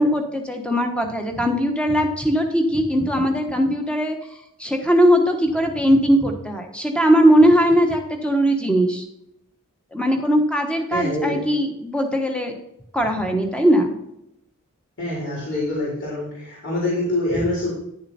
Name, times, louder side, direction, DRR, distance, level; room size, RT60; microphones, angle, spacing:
voice 1, 0.0-4.2 4.6-9.0 9.9-12.6 12.9-13.9, equal, 5° left, 4 dB, 1.2 m, -19 dB
voice 2, 10.9-11.4 15.0-17.7, left 1 dB, 55° left, -6 dB, 4.1 m, -25 dB
10.5 x 6.8 x 4.3 m, 0.81 s
head